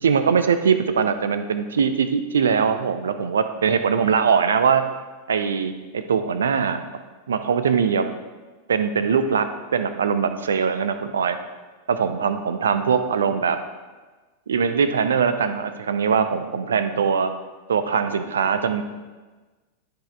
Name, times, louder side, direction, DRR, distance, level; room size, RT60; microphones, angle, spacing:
voice 1, 0.0-4.9 5.3-6.8 7.3-8.1 8.7-9.5 9.7-11.4 11.9-13.6 14.5-17.3 17.7-18.8, right 6 dB, 65° right, 10 dB, 0.6 m, -21 dB
13.5 x 5.0 x 3.3 m, 1.3 s
figure-of-eight pair, 90°, 0 cm